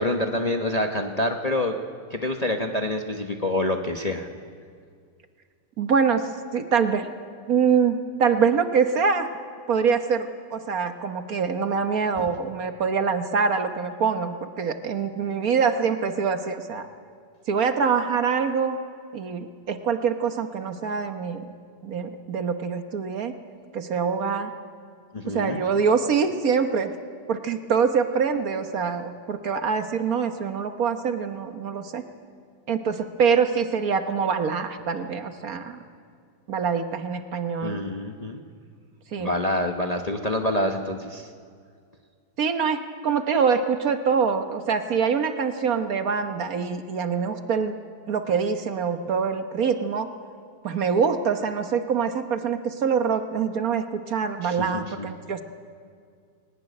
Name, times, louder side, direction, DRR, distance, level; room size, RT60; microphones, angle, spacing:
voice 1, 0.0-1.7 2.1-4.3 12.2-12.3 25.1-25.6 37.6-38.4 39.2-41.3 54.4-55.1, left 1 dB, 30° left, 3 dB, 0.9 m, -27 dB
voice 2, 5.8-7.1 7.5-9.3 9.7-16.9 17.5-18.8 19.1-21.5 21.8-23.3 23.7-24.5 25.3-27.0 27.3-32.0 32.7-35.8 36.5-37.8 39.1-39.3 42.4-47.7 48.1-50.1 50.6-55.4, right 6 dB, 60° right, 7 dB, 1.5 m, -24 dB
20.0 x 17.5 x 9.9 m, 2.2 s
omnidirectional pair, 1.8 m